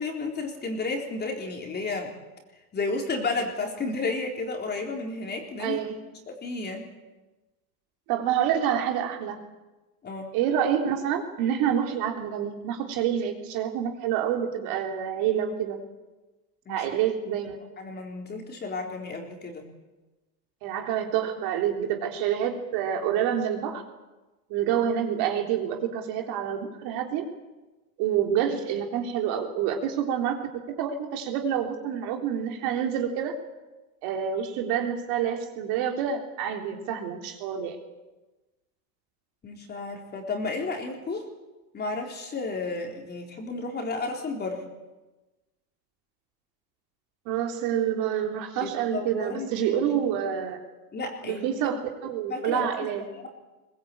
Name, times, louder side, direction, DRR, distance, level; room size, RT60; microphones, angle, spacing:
voice 1, 0.0-2.1 2.7-5.8 6.3-6.9 10.0-10.3 16.7-16.8 17.8-19.7 39.4-41.2 41.7-44.6 48.6-50.1 50.9-51.5 51.7-51.8 52.3-52.9, left 3 dB, 20° left, 2 dB, 4.0 m, -32 dB
voice 2, 5.6-6.0 8.1-9.4 10.3-15.8 16.7-17.6 20.6-23.8 24.5-27.2 28.0-30.4 30.8-33.3 34.0-37.8 47.3-50.6 51.2-53.0, right 9 dB, 50° right, 2 dB, 3.6 m, -27 dB
22.0 x 19.5 x 8.8 m, 1.1 s
supercardioid pair, 140°, 49 cm